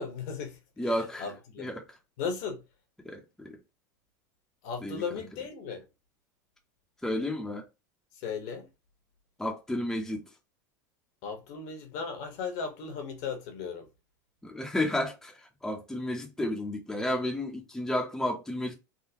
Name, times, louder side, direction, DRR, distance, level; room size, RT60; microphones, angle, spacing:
voice 1, 0.0-1.8 2.2-2.6 4.6-5.9 8.2-8.7 11.2-13.9, left 5 dB, 60° left, 1.2 m, -36 dB
voice 2, 0.8-1.2 1.6-1.8 3.0-3.6 4.8-5.0 7.0-7.7 9.4-10.2 14.4-18.7, left 1 dB, 5° left, 0.8 m, -32 dB
3.8 x 2.2 x 2.8 m
supercardioid pair, 140°, 10 cm